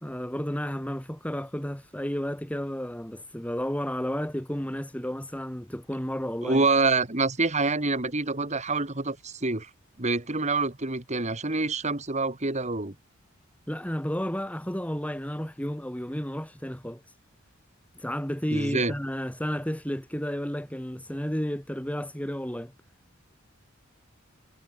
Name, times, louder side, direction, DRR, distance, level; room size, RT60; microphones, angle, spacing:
voice 1, 0.0-6.6 13.7-17.0 17.9-22.7, equal, 5° left, 2.1 m, -32 dB
voice 2, 6.4-9.7 10.0-12.9 18.5-18.9, right 3 dB, 35° right, 2.6 m, -26 dB
head